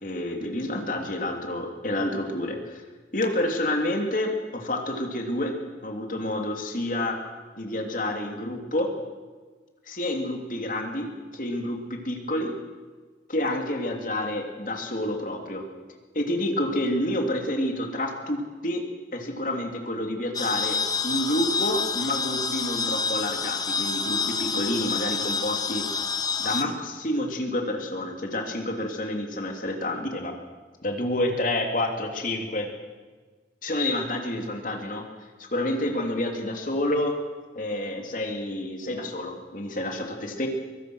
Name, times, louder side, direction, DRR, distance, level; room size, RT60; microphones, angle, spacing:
voice 1, 0.0-2.8 3.1-5.6 5.8-7.2 7.6-8.9 9.9-12.6 13.3-15.6 16.1-18.8 19.1-25.9 26.4-30.3 30.8-32.7 33.6-35.0 35.4-37.2 37.5-40.5, left 1 dB, 50° left, 3 dB, 3.2 m, -29 dB
sound 1, 20.3-26.6, left 5 dB, 20° left, 1.0 m, -28 dB
23.5 x 23.0 x 6.5 m, 1.4 s
head